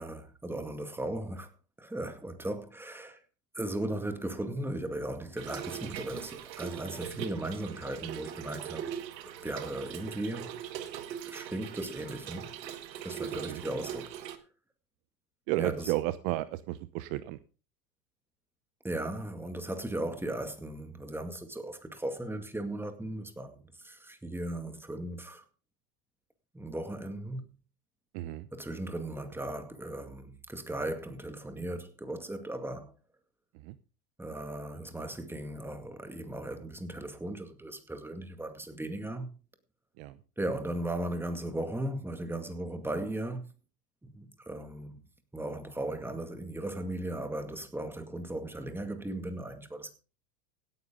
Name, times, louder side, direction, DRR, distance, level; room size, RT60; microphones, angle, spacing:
voice 1, 0.0-1.5 1.8-3.2 3.5-8.9 9.4-10.5 11.2-12.5 13.0-14.2 15.6-15.9 18.8-25.5 26.5-27.4 28.5-32.9 34.2-39.3 40.4-43.4 44.0-45.0 45.3-49.9, right 1 dB, 5° right, 2.1 m, -37 dB
Trickle dribble / Fill (with liquid), 5.4-14.4, right 10 dB, 80° right, 1.7 m, -41 dB
voice 2, 15.5-17.4 28.1-28.5 33.6-33.8 40.0-40.2, right 17 dB, 50° right, 0.9 m, -32 dB
17.0 x 9.6 x 3.8 m
hypercardioid pair, 110°, 50 cm